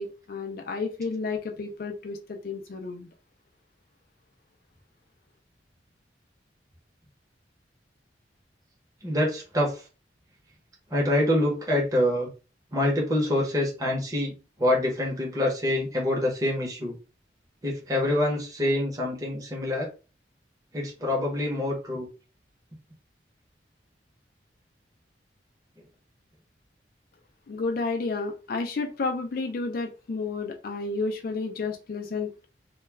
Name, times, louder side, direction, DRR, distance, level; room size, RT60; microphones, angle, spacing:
voice 1, 0.0-3.1 27.5-32.5, left 3 dB, 50° left, 4 dB, 0.4 m, -31 dB
voice 2, 9.0-9.8 10.9-12.3 12.7-14.3 14.6-16.9 17.6-19.9 20.7-22.1, left 1 dB, 20° right, -2 dB, 0.8 m, -26 dB
2.2 x 2.1 x 3.2 m, 0.32 s
head